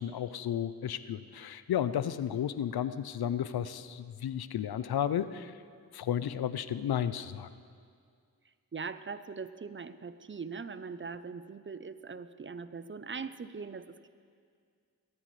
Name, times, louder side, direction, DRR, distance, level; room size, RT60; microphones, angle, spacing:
voice 1, 0.0-5.6 5.9-7.5, left 9 dB, 80° left, 14 dB, 0.5 m, -33 dB
voice 2, 8.7-14.1, right 5 dB, 30° right, 13 dB, 0.5 m, -41 dB
18.0 x 13.0 x 3.2 m, 2.2 s
cardioid pair, 45°, 37 cm